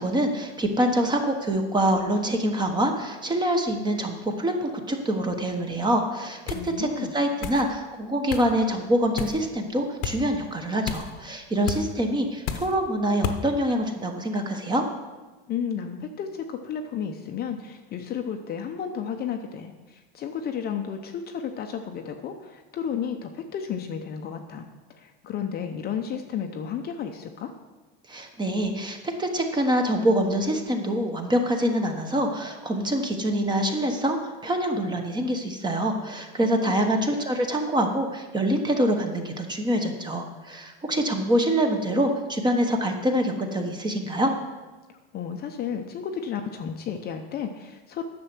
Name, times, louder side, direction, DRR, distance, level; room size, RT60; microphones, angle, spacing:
voice 1, 0.0-14.8 28.1-44.3, right 1 dB, 15° right, 5 dB, 1.0 m, -25 dB
sound 1, 6.5-6.7 7.4-7.7 8.3-8.5 9.2-9.4 10.0-10.2 10.9-11.1 11.7-11.8 12.5-12.7 13.2-13.4, left 8 dB, 55° left, 1.0 m, -31 dB
voice 2, 6.5-7.1 15.5-27.5 36.8-37.0 45.1-48.0, left 7 dB, 30° left, 5 dB, 0.7 m, -33 dB
9.9 x 6.9 x 6.0 m, 1.2 s
supercardioid pair, 140°, 31 cm